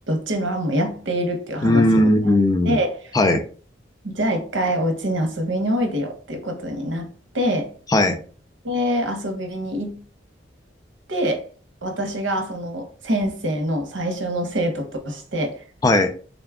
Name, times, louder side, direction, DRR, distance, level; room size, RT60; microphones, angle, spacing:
voice 1, 0.1-2.1 2.7-2.9 4.0-7.1 7.3-7.7 8.6-10.0 11.1-11.4 11.8-15.6, equal, 80° right, 0.8 m, -25 dB
voice 2, 1.6-2.8 3.1-3.4 7.9-8.2 15.8-16.1, left 1 dB, 20° left, 0.3 m, -17 dB
3.8 x 2.3 x 3.5 m
head